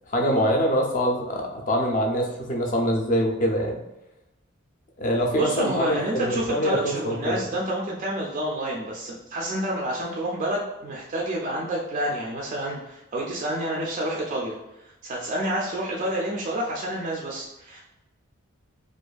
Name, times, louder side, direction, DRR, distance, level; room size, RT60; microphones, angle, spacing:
voice 1, 0.1-3.8 5.0-7.4, equal, 40° left, 1 dB, 0.4 m, -24 dB
voice 2, 5.3-14.5 15.0-17.8, right 1 dB, 35° right, -3 dB, 0.3 m, -29 dB
2.5 x 2.4 x 2.2 m, 0.94 s
head